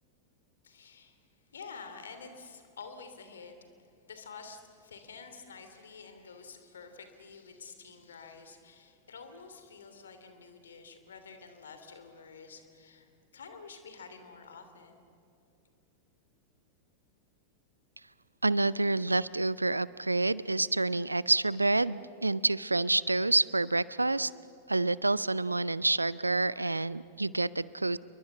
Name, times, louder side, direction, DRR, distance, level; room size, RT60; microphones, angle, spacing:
voice 1, 0.6-1.2 1.5-3.5 4.1-15.0, left 5 dB, 65° left, 8 dB, 3.0 m, -49 dB
voice 2, 18.4-24.3 24.7-28.0, right 2 dB, 80° right, 20 dB, 0.5 m, -28 dB
28.5 x 23.0 x 7.2 m, 2.8 s
figure-of-eight pair, 90°, 0 cm